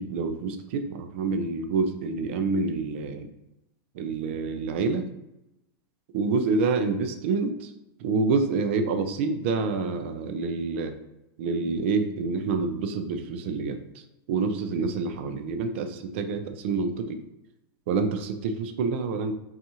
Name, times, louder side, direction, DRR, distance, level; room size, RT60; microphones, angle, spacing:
voice 1, 0.0-3.3 3.9-5.1 6.1-7.7 8.0-10.9 11.4-13.8 14.3-17.2 17.9-19.3, right 4 dB, 30° right, 7 dB, 0.3 m, -27 dB
5.5 x 2.4 x 2.8 m, 0.89 s
supercardioid pair, 180°, 13 cm